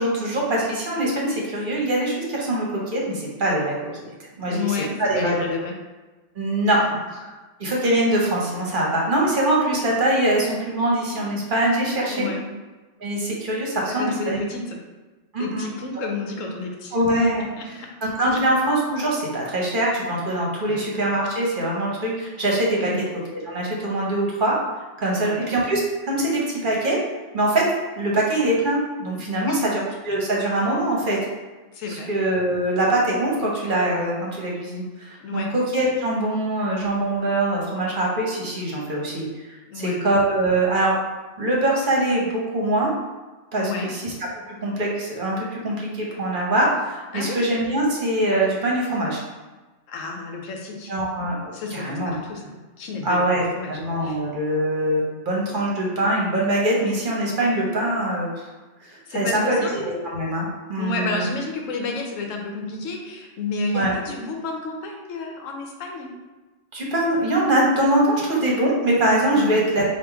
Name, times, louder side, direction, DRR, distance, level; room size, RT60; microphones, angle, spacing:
voice 1, 0.0-4.0 4.4-5.3 6.3-6.8 7.1-7.2 7.6-12.3 13.0-14.4 15.3-15.7 15.9-16.0 16.9-17.4 18.0-22.9 23.4-24.5 25.0-27.0 27.3-27.7 28.0-29.8 30.0-31.2 31.9-40.9 41.4-42.9 43.5-44.1 44.5-49.2 50.9-52.1 53.0-53.4 53.7-58.5 58.8-61.2 63.7-63.9 66.7-69.8, right 1 dB, 45° right, -3 dB, 1.0 m, -23 dB
voice 2, 4.5-5.7 6.7-6.8 12.1-12.4 13.9-14.8 15.4-17.3 17.6-17.9 18.3-18.4 20.6-20.8 22.8-23.0 25.1-25.5 29.4-29.6 31.7-32.1 35.2-35.5 39.7-40.0 43.5-43.9 47.1-47.4 49.9-50.9 51.5-54.2 59.1-59.7 60.8-66.1 69.3-69.7, left 3 dB, 90° left, 1 dB, 1.1 m, -31 dB
3.5 x 2.6 x 4.5 m, 1.2 s
omnidirectional pair, 1.3 m